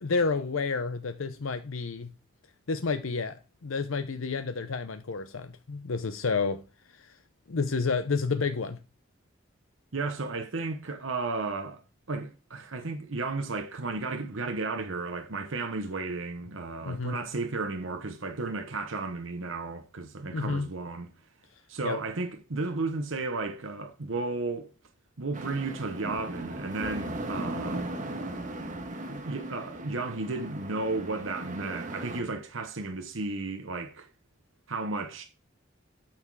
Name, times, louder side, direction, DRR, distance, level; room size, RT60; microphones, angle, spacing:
voice 1, 0.0-2.1 2.7-6.6 6.9-7.1 7.5-8.8 16.8-17.2 20.3-20.7 21.8-22.0, left 4 dB, 80° left, 0.7 m, -30 dB
voice 2, 9.9-11.8 12.1-21.1 21.7-24.7 25.2-28.3 29.1-34.1 34.7-35.2, right 3 dB, 70° right, 1.0 m, -33 dB
sound 1, 25.3-32.2, right 1 dB, 40° right, 1.6 m, -37 dB
8.9 x 6.0 x 4.7 m
head